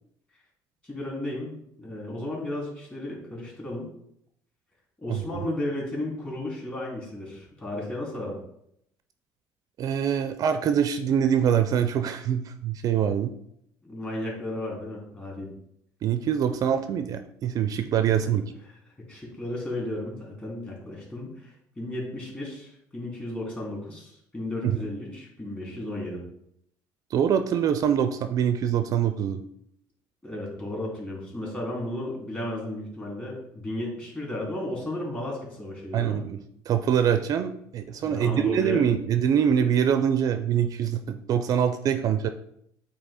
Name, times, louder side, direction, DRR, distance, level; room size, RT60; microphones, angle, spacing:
voice 1, 0.8-3.9 5.0-8.4 13.8-15.5 18.7-18.8 19.1-26.2 30.2-36.2 38.0-38.9, left 1 dB, 20° left, -3 dB, 2.5 m, -34 dB
voice 2, 5.1-5.4 9.8-13.3 16.0-18.4 24.6-24.8 27.1-29.4 35.9-36.4 36.7-42.3, right 8 dB, 50° right, 8 dB, 0.4 m, -24 dB
8.4 x 2.8 x 4.1 m, 0.73 s
cardioid pair, 130°, 8 cm